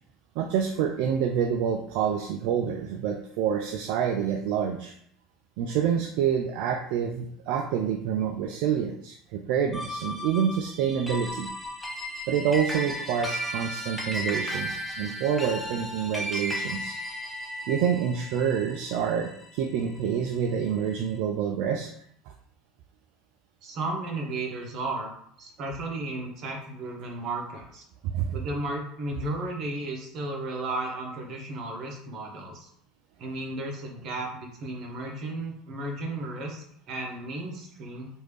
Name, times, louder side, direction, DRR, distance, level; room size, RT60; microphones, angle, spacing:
voice 1, 0.4-5.0 5.6-11.5 12.3-17.0 17.7-21.9 28.0-28.4, right 8 dB, 70° right, 3 dB, 0.3 m, -27 dB
sound 1, 9.7-20.3, equal, 10° left, 0.8 m, -35 dB
voice 2, 23.6-25.1 25.4-27.8 28.3-32.7 33.2-38.1, right 2 dB, 50° right, 1 dB, 0.9 m, -34 dB
3.2 x 2.6 x 3.2 m, 0.68 s
hypercardioid pair, 85°, 0 cm